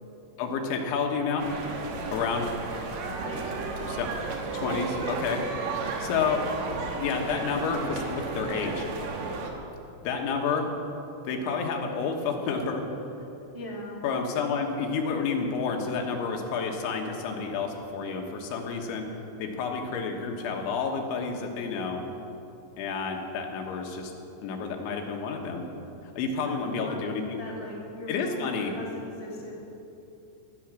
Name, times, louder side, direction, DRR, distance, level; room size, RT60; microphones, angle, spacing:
voice 1, 0.4-1.5 2.1-2.4 3.9-4.1 4.5-5.4 6.0-6.4 7.0-8.9 10.0-10.7 11.3-12.8 14.0-19.1 19.4-22.0 22.8-24.1 24.4-25.7 26.2-27.4 28.1-28.7, left 5 dB, 85° left, 2 dB, 3.7 m, -30 dB
sound 1, 1.4-9.5, right 4 dB, 65° right, 1.8 m, -33 dB
voice 2, 3.2-3.9 13.5-14.0 26.4-29.6, left 1 dB, 10° right, -6 dB, 1.6 m, -39 dB
16.0 x 12.0 x 6.2 m, 2.8 s
omnidirectional pair, 5.2 m